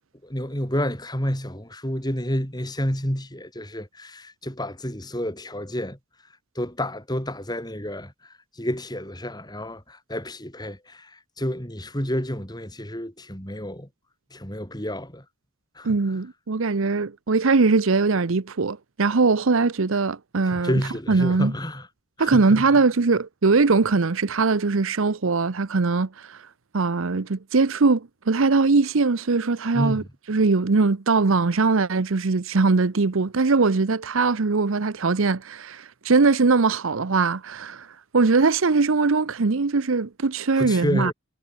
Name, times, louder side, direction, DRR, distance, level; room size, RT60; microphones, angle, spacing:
voice 1, 0.2-6.0 6.6-13.9 14.3-15.2 15.8-16.0 20.4-21.9 22.2-22.8 29.7-30.1 40.6-41.1, equal, 20° left, 7.3 m, -29 dB
voice 2, 15.8-20.8 21.1-21.5 22.2-26.4 26.7-30.0 30.3-37.9 38.1-41.1, right 4 dB, 70° right, 0.7 m, -21 dB
head